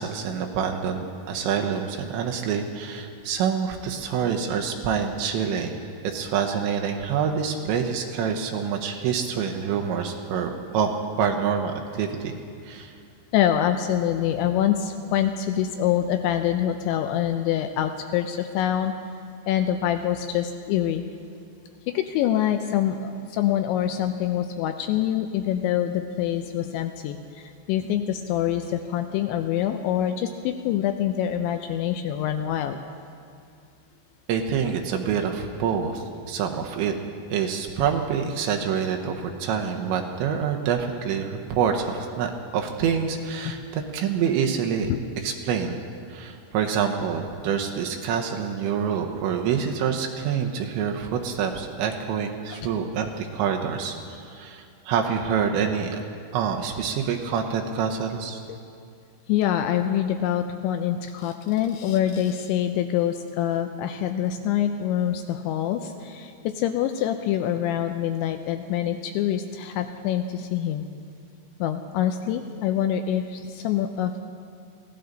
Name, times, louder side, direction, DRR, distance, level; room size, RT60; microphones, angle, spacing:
voice 1, 0.0-10.9 11.2-12.3 12.6-12.9 34.3-36.9 37.3-44.9 45.2-45.8 46.1-56.0 56.3-58.4, right 7 dB, 75° right, 2 dB, 3.0 m, -26 dB
voice 2, 13.3-18.9 19.5-21.0 21.9-32.8 44.9-45.0 52.5-52.6 59.3-70.9 71.6-74.2, left 10 dB, 85° left, 7 dB, 2.7 m, -25 dB
22.0 x 16.5 x 3.9 m, 2.3 s
omnidirectional pair, 5.7 m